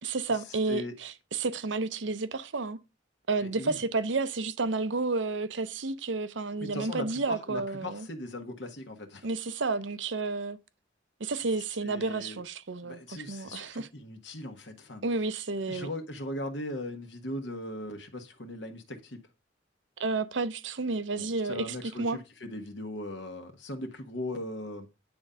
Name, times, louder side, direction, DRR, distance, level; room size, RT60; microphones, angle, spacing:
voice 1, 0.0-2.8 3.3-8.1 9.2-10.6 11.2-13.9 15.0-15.9 20.0-22.2, right 3 dB, 75° right, 0.8 m, -31 dB
voice 2, 3.4-3.8 6.6-9.3 11.8-12.4 12.8-15.0 15.7-19.2 21.2-24.9, left 1 dB, 65° left, 1.3 m, -39 dB
9.5 x 3.8 x 5.5 m
head